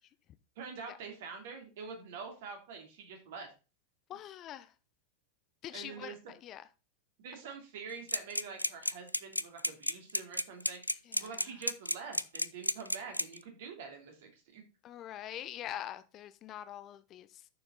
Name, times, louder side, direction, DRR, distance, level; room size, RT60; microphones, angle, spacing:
voice 1, 0.6-3.5 5.7-6.2 7.2-10.9 11.2-14.6, right 5 dB, 55° right, 2.9 m, -46 dB
voice 2, 4.1-4.7 5.6-6.7 11.0-11.6 14.8-17.5, left 11 dB, 35° left, 0.6 m, -44 dB
sound 1, 8.1-13.4, left 1 dB, 90° left, 0.4 m, -32 dB
9.4 x 6.9 x 4.0 m
figure-of-eight pair, 90°, 0 cm